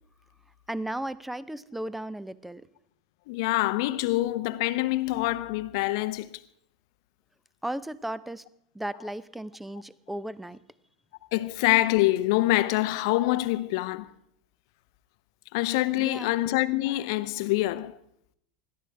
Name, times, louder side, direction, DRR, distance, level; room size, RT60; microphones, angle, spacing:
voice 1, 0.7-2.7 7.6-8.4 8.7-10.6 16.0-16.4, right 1 dB, 5° right, 0.7 m, -35 dB
voice 2, 3.3-6.3 11.3-14.1 15.5-17.9, left 17 dB, 60° left, 0.7 m, -25 dB
21.0 x 14.0 x 3.5 m
hypercardioid pair, 85°, 3 cm